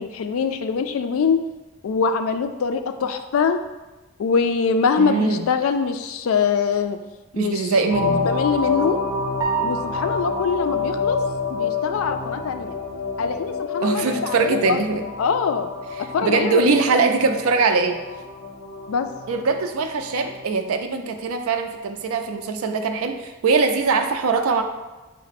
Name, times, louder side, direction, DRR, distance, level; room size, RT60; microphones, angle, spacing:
voice 1, 0.0-1.4 1.8-3.6 4.2-7.0 7.3-7.7 8.1-9.0 9.6-11.2 11.5-12.8 13.2-14.8 15.2-15.7 16.1-16.6 16.9-17.0 18.9-19.1, left 5 dB, 80° left, 8 dB, 0.3 m, -23 dB
voice 2, 5.0-5.4 7.4-8.3 13.8-15.0 16.0-18.0 19.3-24.6, right 4 dB, 85° right, 6 dB, 0.4 m, -22 dB
sound 1, 7.9-20.4, left 4 dB, 60° left, 0.9 m, -28 dB
sound 2, 9.4-10.5, right 6 dB, 20° right, 0.4 m, -28 dB
5.3 x 2.1 x 4.0 m, 1.1 s
head